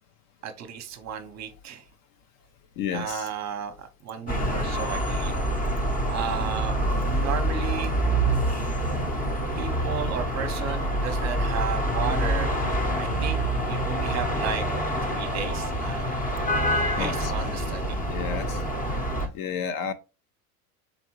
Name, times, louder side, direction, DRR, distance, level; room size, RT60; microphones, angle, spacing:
voice 1, 0.4-1.9 2.9-5.4 6.1-7.9 9.6-12.5 13.0-13.4 13.7-14.6 15.0-16.1 16.9-18.0 18.9-19.0, right 7 dB, 35° right, 0.8 m, -34 dB
voice 2, 2.8-3.3 17.0-17.5 18.1-18.6 19.3-19.9, left 7 dB, 45° left, 0.6 m, -31 dB
sound 1, 4.3-19.3, right 1 dB, 15° left, 0.8 m, -26 dB
4.0 x 3.4 x 3.0 m
supercardioid pair, 105°, 47 cm